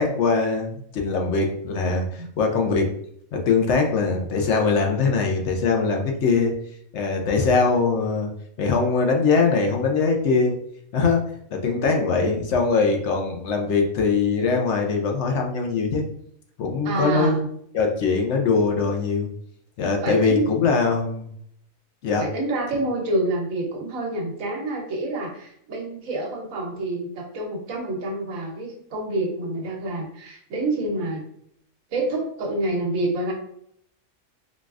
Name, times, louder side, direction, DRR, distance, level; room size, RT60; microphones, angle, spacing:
voice 1, 0.0-2.9 3.3-6.5 6.9-8.3 8.6-10.5 10.9-11.2 11.5-16.0 16.6-17.5 17.7-19.3 19.8-21.3 22.0-22.3, left 4 dB, 65° left, 2 dB, 0.8 m, -22 dB
voice 2, 16.8-17.3 20.0-20.5 22.2-31.2 31.9-33.3, right 2 dB, 75° right, 0 dB, 1.2 m, -27 dB
3.9 x 2.3 x 2.4 m, 0.68 s
omnidirectional pair, 1.4 m